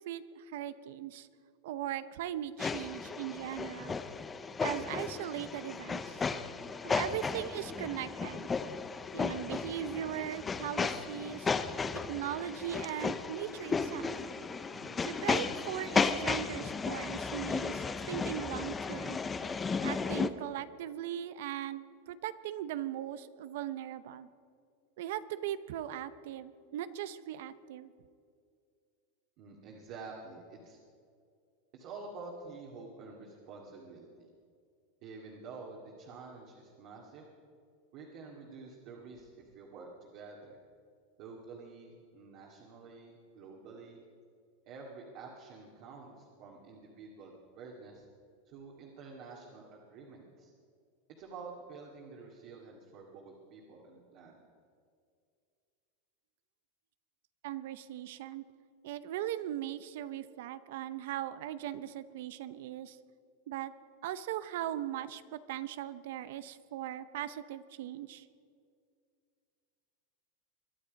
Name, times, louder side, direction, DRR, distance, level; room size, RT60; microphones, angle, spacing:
voice 1, 0.1-1.3 1.6-4.0 4.6-6.3 6.8-8.5 9.1-11.5 12.1-14.1 15.0-19.2 19.8-24.3 25.0-27.9 57.4-58.4 58.8-63.0 63.5-63.7 64.0-68.3, right 11 dB, 65° right, 14 dB, 0.7 m, -39 dB
sound 1, 2.6-20.3, left 4 dB, 15° left, 0.6 m, -34 dB
voice 2, 29.4-30.8 31.7-34.3 35.0-37.3 37.9-40.6 41.2-44.0 44.7-48.1 48.5-50.5 51.2-54.4, right 4 dB, 40° right, -1 dB, 2.1 m, -49 dB
22.5 x 12.0 x 5.2 m, 2.3 s
supercardioid pair, 165°, 0 cm